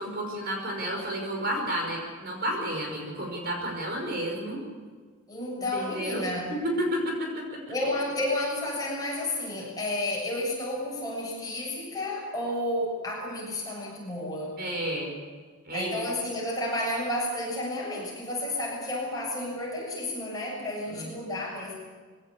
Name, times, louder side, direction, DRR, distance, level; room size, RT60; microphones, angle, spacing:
voice 1, 0.0-4.6 5.7-6.2 6.5-7.6 14.6-15.2 15.7-15.9 20.9-21.1, equal, 45° right, 1 dB, 5.3 m, -31 dB
voice 2, 5.3-6.5 7.7-14.6 15.7-21.8, left 1 dB, 15° left, -4 dB, 6.9 m, -31 dB
22.0 x 17.0 x 8.4 m, 1.5 s
head